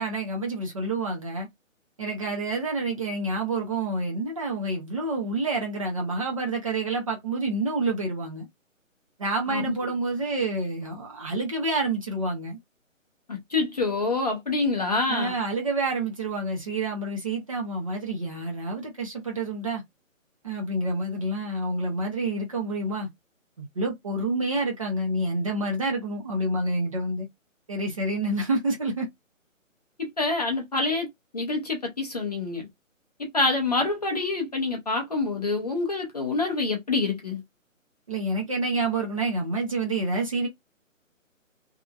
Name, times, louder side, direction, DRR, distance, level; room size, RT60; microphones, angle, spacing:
voice 1, 0.0-1.5 2.0-8.5 9.2-12.6 15.1-19.8 20.4-23.1 23.6-27.3 27.7-29.1 38.1-40.5, right 2 dB, 25° right, 0.7 m, -28 dB
voice 2, 9.5-9.9 13.3-15.3 30.0-31.1 31.3-32.7 33.3-37.4, left 3 dB, 30° left, 0.6 m, -26 dB
2.8 x 2.4 x 2.3 m
figure-of-eight pair, 155°, 40 cm